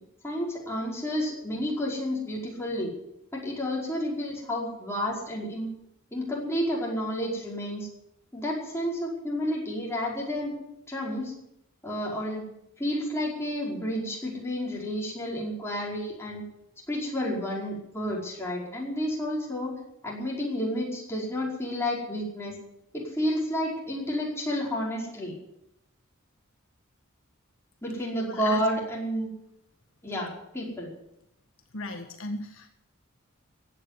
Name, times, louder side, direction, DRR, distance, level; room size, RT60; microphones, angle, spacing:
voice 1, 0.2-2.9 3.3-5.7 6.1-7.9 8.3-10.5 10.9-11.3 11.8-12.5 12.8-16.4 16.9-19.7 20.0-22.5 22.9-25.3 27.8-29.3 30.0-30.9, equal, 15° left, -4 dB, 5.1 m, -30 dB
voice 2, 28.3-28.6 31.7-32.7, left 2 dB, 75° left, 4 dB, 1.7 m, -36 dB
16.0 x 9.1 x 9.8 m, 0.81 s
head